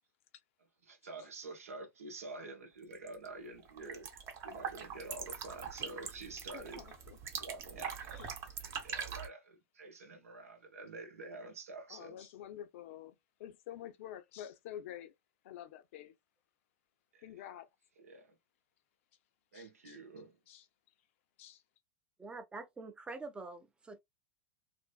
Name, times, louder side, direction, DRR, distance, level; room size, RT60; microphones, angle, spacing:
voice 1, 0.9-4.1 4.4-6.9 7.4-8.2 8.8-12.3 17.1-17.2 18.0-18.3 19.5-20.4, right 3 dB, 85° right, 0.9 m, -48 dB
sound 1, 2.9-3.3 3.6-9.3, right 6 dB, 35° right, 0.8 m, -43 dB
voice 2, 6.5-7.2 7.8-8.3 11.9-15.1 15.4-16.1 17.2-17.7 19.5-20.0 20.5-20.7 21.4-21.6, left 11 dB, 65° left, 0.5 m, -49 dB
voice 3, 22.2-24.0, right 3 dB, 15° right, 0.5 m, -45 dB
2.6 x 2.1 x 2.2 m
hypercardioid pair, 105°, 8 cm